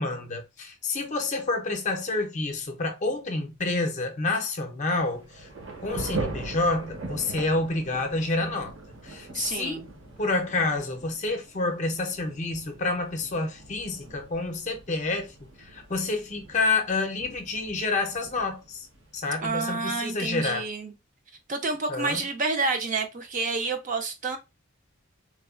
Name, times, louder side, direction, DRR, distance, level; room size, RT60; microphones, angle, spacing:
voice 1, 0.0-5.5 5.8-8.7 9.0-9.9 10.2-18.9 19.1-20.7 21.9-22.2, left 3 dB, 35° left, 0.6 m, -28 dB
Thunder / Rain, 5.0-19.5, right 2 dB, 65° right, 0.9 m, -41 dB
voice 2, 9.3-9.8 19.4-20.9 21.5-24.4, right 3 dB, 40° right, 0.5 m, -29 dB
3.2 x 2.2 x 2.3 m
head